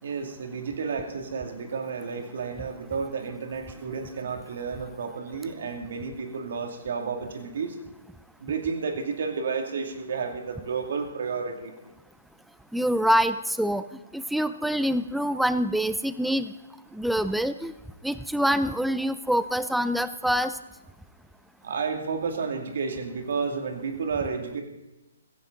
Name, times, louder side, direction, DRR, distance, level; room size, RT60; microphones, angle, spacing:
voice 1, 0.0-7.8 8.4-11.7 21.6-24.6, right 5 dB, 60° right, 4 dB, 2.6 m, -31 dB
voice 2, 12.7-13.8 14.1-16.5 16.9-17.7 18.0-20.6, equal, ahead, 13 dB, 0.6 m, -25 dB
16.0 x 15.0 x 4.0 m, 1.0 s
hypercardioid pair, 140°, 0 cm